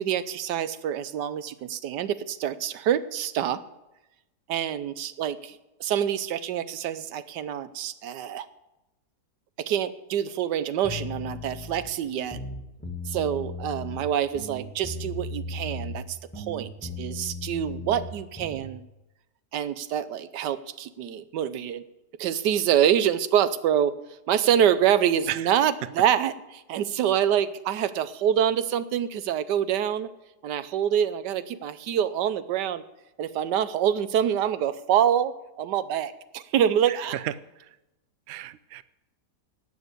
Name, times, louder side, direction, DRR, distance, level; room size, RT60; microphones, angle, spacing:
voice 1, 0.0-3.6 4.5-8.5 9.6-12.4 13.1-18.8 19.5-21.8 22.2-24.0 24.3-30.1 30.4-32.8 33.2-37.2, right 9 dB, 85° right, 14 dB, 1.4 m, -26 dB
sound 1, 10.8-11.9 12.2-14.0 14.3-16.1 16.3-18.7, left 2 dB, 10° left, 1.5 m, -36 dB
voice 2, 38.3-38.8, right 13 dB, 65° right, 16 dB, 0.6 m, -32 dB
12.0 x 8.3 x 8.1 m, 0.96 s
omnidirectional pair, 1.8 m